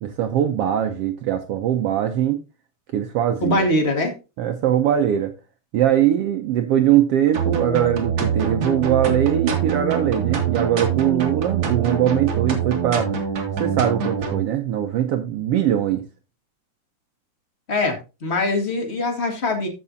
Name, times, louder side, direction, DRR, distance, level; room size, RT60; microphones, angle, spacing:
voice 1, 0.0-2.4 2.9-3.7 4.4-5.3 5.7-13.2 13.6-16.0, right 11 dB, 75° right, 1.4 m, -21 dB
voice 2, 3.4-4.1 17.7-19.7, left 2 dB, 25° left, 1.6 m, -22 dB
sound 1, 7.3-14.4, right 6 dB, 45° right, 2.3 m, -24 dB
14.0 x 6.0 x 2.7 m
omnidirectional pair, 3.4 m